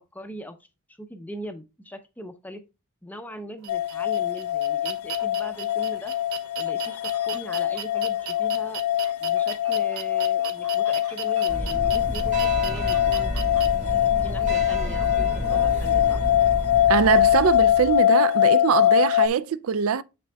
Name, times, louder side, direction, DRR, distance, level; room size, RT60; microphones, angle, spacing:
voice 1, 0.1-0.7 1.0-2.6 3.0-6.2 6.6-8.8 9.2-13.3 13.9-16.2, equal, 10° left, 0.5 m, -40 dB
sound 1, 3.6-13.7, right 9 dB, 90° right, 1.0 m, -37 dB
sound 2, 3.7-19.3, left 12 dB, 75° left, 0.4 m, -23 dB
sound 3, 11.5-18.0, equal, 35° right, 1.6 m, -30 dB
voice 2, 16.9-20.0, right 7 dB, 70° right, 0.4 m, -22 dB
7.7 x 5.9 x 2.2 m
head